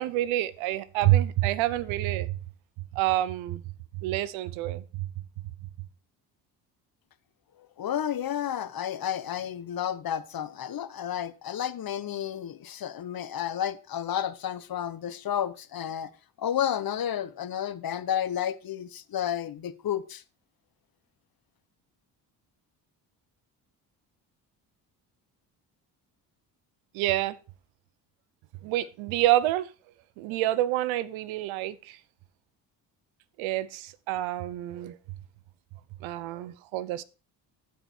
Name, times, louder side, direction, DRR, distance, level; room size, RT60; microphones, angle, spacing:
voice 1, 0.0-2.4 2.9-3.6 4.0-5.1 26.9-27.3 28.6-29.7 30.2-32.0 33.4-35.0 36.0-37.0, right 15 dB, 75° right, 0.9 m, -27 dB
voice 2, 7.8-16.1 16.4-20.2, left 10 dB, 45° left, 1.1 m, -31 dB
14.5 x 4.9 x 4.5 m
hypercardioid pair, 60°, 48 cm